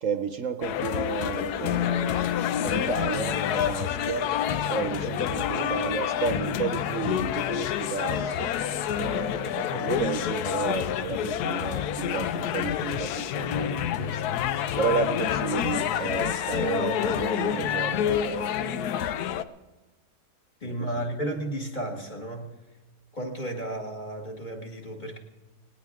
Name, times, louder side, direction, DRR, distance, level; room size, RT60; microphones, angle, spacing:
voice 1, 0.0-2.3 2.6-4.3 4.7-8.5 8.9-14.3 14.8-18.9 20.6-21.0, right 6 dB, 60° right, 9 dB, 1.1 m, -32 dB
sound 1, 0.6-19.4, left 10 dB, 85° left, 1.2 m, -28 dB
voice 2, 20.6-22.5 23.1-25.2, right 1 dB, 30° left, 0 dB, 2.1 m, -33 dB
18.5 x 18.5 x 3.6 m, 1.1 s
omnidirectional pair, 1.6 m